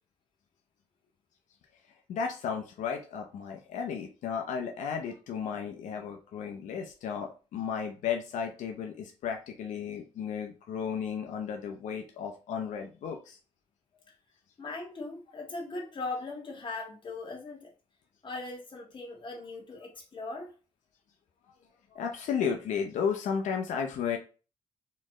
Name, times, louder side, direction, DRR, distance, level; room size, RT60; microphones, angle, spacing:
voice 1, 2.1-13.4 21.9-24.2, left 7 dB, 90° left, 3 dB, 0.7 m, -34 dB
voice 2, 14.6-17.7 18.2-20.5, left 3 dB, 40° left, 0 dB, 1.7 m, -39 dB
4.3 x 3.2 x 3.7 m, 0.34 s
cardioid pair, 105°, 12 cm